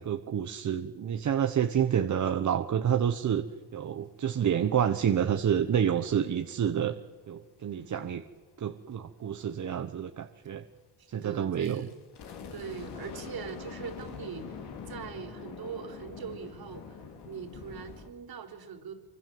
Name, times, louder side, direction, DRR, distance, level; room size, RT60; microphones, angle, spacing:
voice 1, 0.0-3.4 3.7-6.9 7.3-8.2 8.6-10.6 11.1-11.9, right 9 dB, 45° right, 8 dB, 1.1 m, -28 dB
voice 2, 7.6-8.0 11.0-11.9 12.5-17.0 17.2-18.9, right 6 dB, 60° right, 5 dB, 4.0 m, -42 dB
sound 1, 11.6-18.1, left 6 dB, 70° left, 3.4 m, -44 dB
26.0 x 24.5 x 7.7 m, 1.4 s
cardioid pair, 120°, 41 cm